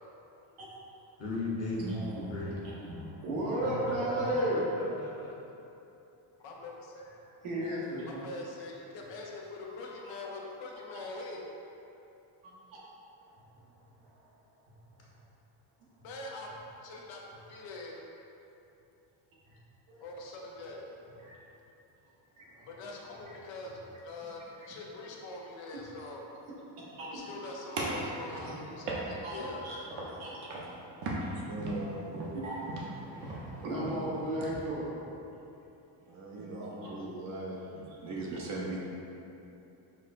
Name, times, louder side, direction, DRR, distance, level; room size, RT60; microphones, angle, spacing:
voice 1, 1.2-2.0 2.3-2.8 3.6-3.9 4.3-5.3, left 2 dB, 30° left, -7 dB, 1.0 m, -37 dB
voice 2, 1.7-4.7 7.4-8.3 10.0-10.1 10.9-11.0 12.4-12.5 13.5-13.6 14.0-14.3 15.8-15.9 19.5-19.6 19.9-20.0 21.2-21.4 22.4-22.7 23.1-23.5 25.7-25.9 26.5-27.3 28.1-28.5 29.2-29.8 30.2-31.4 32.3-34.9 36.4-36.9 38.0-38.4, right 1 dB, 85° right, -6 dB, 1.1 m, -36 dB
voice 3, 6.4-7.2 8.1-11.4 16.0-16.5 16.8-17.2 17.5-18.0 20.0-20.8 22.7-23.7 24.0-26.2 27.1-29.6 29.9-30.1, left 2 dB, 70° left, -1 dB, 0.7 m, -43 dB
sound 1, 27.8-29.6 29.9-30.2 30.5-30.7 31.0-34.6, right 2 dB, 65° right, 0.8 m, -37 dB
voice 4, 31.3-32.3 36.1-38.8, right 2 dB, 40° right, -3 dB, 0.4 m, -39 dB
5.6 x 2.1 x 2.5 m, 2.9 s
cardioid pair, 120°, 47 cm